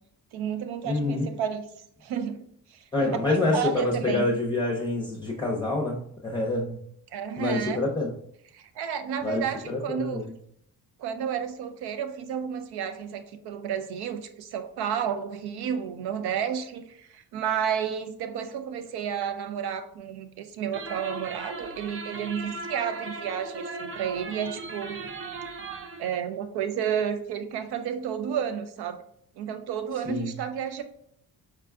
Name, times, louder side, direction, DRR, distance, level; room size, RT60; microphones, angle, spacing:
voice 1, 0.3-1.7 2.0-2.4 2.7-4.3 7.1-7.8 8.5-10.3 11.0-25.1 26.0-29.0 29.4-30.8, right 8 dB, 80° right, 9 dB, 0.6 m, -31 dB
voice 2, 0.8-1.3 2.9-6.8 7.4-8.1 9.2-10.3 30.1-30.3, left 2 dB, 10° left, -2 dB, 0.7 m, -27 dB
sound 1, 20.7-26.1, right 3 dB, 35° right, 0.4 m, -38 dB
4.7 x 2.2 x 3.5 m, 0.70 s
cardioid pair, 105°, 38 cm